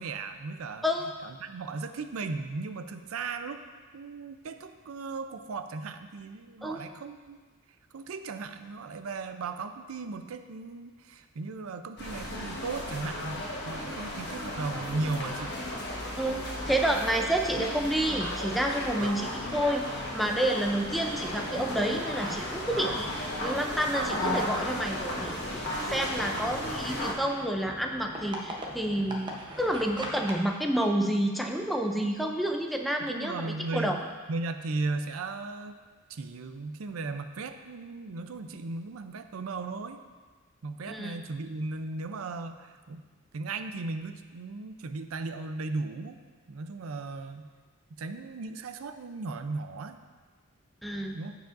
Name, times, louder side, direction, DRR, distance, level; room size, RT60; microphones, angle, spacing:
voice 1, 0.0-0.8 1.2-3.6 3.9-7.4 7.9-15.6 19.0-19.2 22.7-23.0 29.1-29.3 33.0-34.0 34.3-35.8 36.1-40.0 40.6-43.0 43.3-46.2 46.5-47.5 48.0-50.0 51.1-51.4, right 3 dB, 80° right, 8 dB, 0.5 m, -36 dB
sound 1, 12.0-27.1, left 1 dB, 55° left, 1.2 m, -34 dB
voice 2, 16.2-23.1 23.4-29.3 29.6-34.0 40.9-41.2 50.8-51.1, right 1 dB, ahead, 2 dB, 0.4 m, -29 dB
sound 2, 20.7-30.4, equal, 20° right, 0.8 m, -43 dB
14.5 x 4.9 x 2.5 m, 1.4 s
head